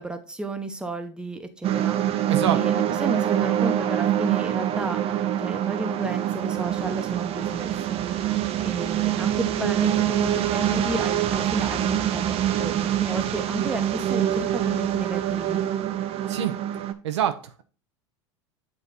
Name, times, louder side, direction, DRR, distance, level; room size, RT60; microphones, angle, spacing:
voice 1, 0.0-2.0 2.5-5.0 5.4-8.0 8.6-15.6, right 1 dB, 5° right, 6 dB, 1.0 m, -32 dB
sound 1, 1.6-16.9, right 11 dB, 40° right, 0.7 m, -25 dB
voice 2, 2.3-2.6 16.3-16.5 17.0-17.6, right 10 dB, 75° right, 8 dB, 0.7 m, -25 dB
8.2 x 3.2 x 4.1 m, 0.36 s
hypercardioid pair, 85°, 15 cm